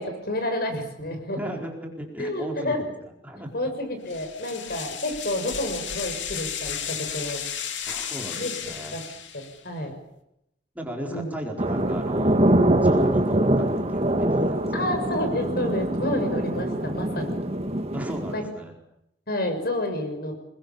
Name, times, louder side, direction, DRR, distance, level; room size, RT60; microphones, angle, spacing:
voice 1, 0.0-1.4 2.2-2.8 3.4-7.4 8.4-8.5 8.9-9.0 9.3-10.0 11.1-11.3 14.7-17.4 18.3-18.4 19.3-20.3, left 1 dB, 60° left, 6 dB, 6.4 m, -29 dB
voice 2, 1.4-2.9 3.2-3.7 7.9-9.0 10.7-12.4 12.8-15.0 17.9-18.7, equal, 10° right, 0 dB, 4.7 m, -36 dB
sound 1, 4.1-9.7, left 8 dB, 80° left, 2.8 m, -34 dB
sound 2, 11.6-18.3, right 1 dB, 35° right, 2.0 m, -23 dB
28.5 x 21.5 x 7.2 m, 0.81 s
head